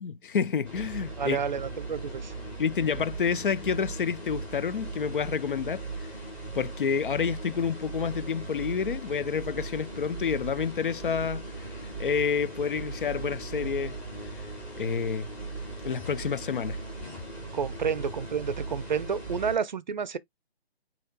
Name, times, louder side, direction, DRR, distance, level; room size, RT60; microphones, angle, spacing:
voice 1, 0.0-1.4 2.6-5.9 6.5-11.7 12.0-14.0 14.4-14.5 14.8-15.3 15.8-16.8, left 6 dB, 55° left, 0.5 m, -29 dB
sound 1, 0.6-19.6, right 3 dB, 5° left, 0.9 m, -38 dB
voice 2, 1.2-2.3 17.5-20.2, right 6 dB, 45° right, 0.5 m, -30 dB
8.2 x 2.9 x 2.2 m
hypercardioid pair, 155°, 32 cm